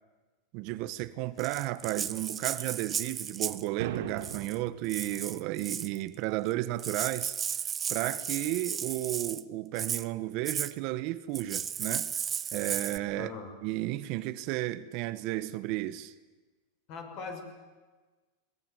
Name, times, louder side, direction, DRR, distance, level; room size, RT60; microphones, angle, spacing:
voice 1, 0.5-7.4 7.9-12.1 12.5-13.3 13.6-16.1, right 16 dB, 50° right, 1.1 m, -33 dB
Rattle (instrument), 1.4-3.7 4.2-4.6 4.9-6.0 6.5-6.6 6.8-9.4 9.8-10.1 10.5-10.7 11.3-13.0, right 7 dB, 25° right, 0.8 m, -34 dB
sound 1, 3.8-4.8, right 10 dB, 75° right, 2.2 m, -37 dB
voice 2, 13.1-13.5 16.9-17.4, left 4 dB, 50° left, 5.9 m, -40 dB
22.0 x 20.0 x 9.2 m
supercardioid pair, 130°, 0 cm